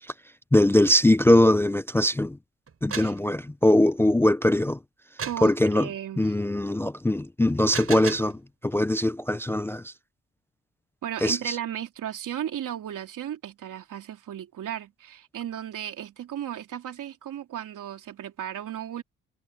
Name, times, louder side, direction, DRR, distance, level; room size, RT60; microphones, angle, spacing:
voice 1, 0.5-2.4 2.8-4.8 5.4-5.9 6.2-9.9 11.2-11.5, left 1 dB, 10° left, 0.4 m, -21 dB
sound 1, 2.7-3.2 5.2-5.5 7.5-8.4, right 6 dB, 45° right, 6.1 m, -34 dB
voice 2, 5.2-6.3 11.0-19.0, right 11 dB, 85° right, 3.1 m, -35 dB
cardioid pair, 120°, 31 cm